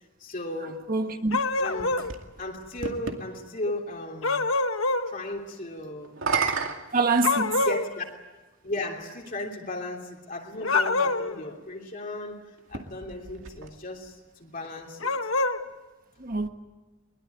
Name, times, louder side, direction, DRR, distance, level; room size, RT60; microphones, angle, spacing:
voice 1, 0.2-0.9 1.6-1.9 2.4-4.4 5.1-6.2 7.6-8.0 8.6-15.1, left 2 dB, 40° left, 3.2 m, -35 dB
voice 2, 0.9-1.4 6.9-7.6 16.2-16.5, right 3 dB, 45° right, 1.4 m, -25 dB
sound 1, 1.3-2.1 4.2-5.1 7.2-7.9 10.6-11.4 15.0-15.6, left 3 dB, 75° left, 1.3 m, -25 dB
sound 2, 1.4-3.2 6.0-7.8 8.8-8.9 12.6-14.1, right 5 dB, 75° right, 2.3 m, -33 dB
22.5 x 21.5 x 9.2 m
head